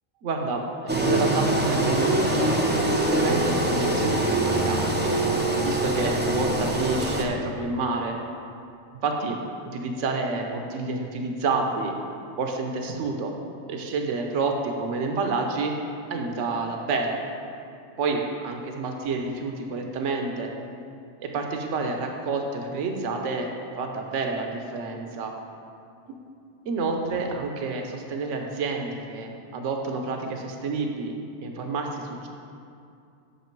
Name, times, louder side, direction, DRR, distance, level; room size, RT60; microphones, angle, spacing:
voice 1, 0.2-5.1 5.6-8.2 9.0-9.4 9.6-12.0 12.4-13.3 13.7-15.8 16.1-17.2 18.0-20.5 21.2-23.5 23.8-25.3 26.7-32.3, right 3 dB, 65° right, 3 dB, 1.1 m, -29 dB
Engine, 0.9-7.2, right 1 dB, 15° right, 0.5 m, -24 dB
8.3 x 6.4 x 4.6 m, 2.5 s
omnidirectional pair, 1.4 m